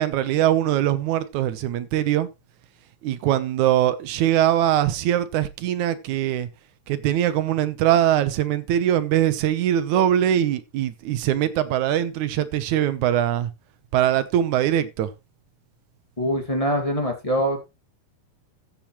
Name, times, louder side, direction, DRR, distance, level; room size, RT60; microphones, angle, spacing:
voice 1, 0.0-2.3 3.0-6.5 6.9-13.5 13.9-15.1, right 11 dB, 75° right, 2.2 m, -22 dB
voice 2, 16.2-17.7, equal, 15° left, 1.6 m, -24 dB
14.5 x 7.4 x 3.1 m
omnidirectional pair, 3.8 m